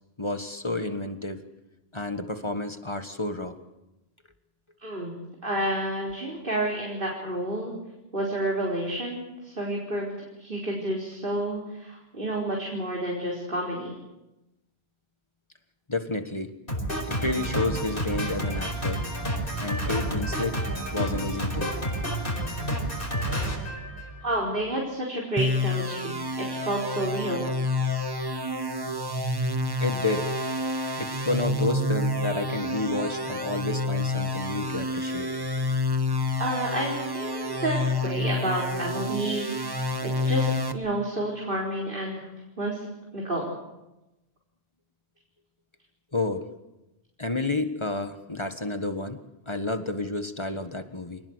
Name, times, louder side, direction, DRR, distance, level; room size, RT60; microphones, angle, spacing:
voice 1, 0.2-1.4 1.9-3.6 15.9-16.5 17.1-19.0 19.6-20.6 20.9-21.8 29.8-30.3 31.0-35.6 46.1-46.5 47.2-49.2 49.5-51.2, left 2 dB, 30° left, 8 dB, 1.6 m, -30 dB
voice 2, 4.8-5.1 5.4-7.7 8.1-10.1 10.4-13.9 24.2-27.5 36.4-39.5 40.0-42.3 42.6-42.9 43.1-43.5, right 1 dB, 60° right, -2 dB, 4.5 m, -30 dB
Drum kit, 16.7-24.5, equal, 60° left, 5.3 m, -30 dB
sound 1, 25.4-40.7, left 1 dB, 20° right, 1.5 m, -28 dB
27.0 x 20.0 x 8.1 m, 0.97 s
omnidirectional pair, 1.0 m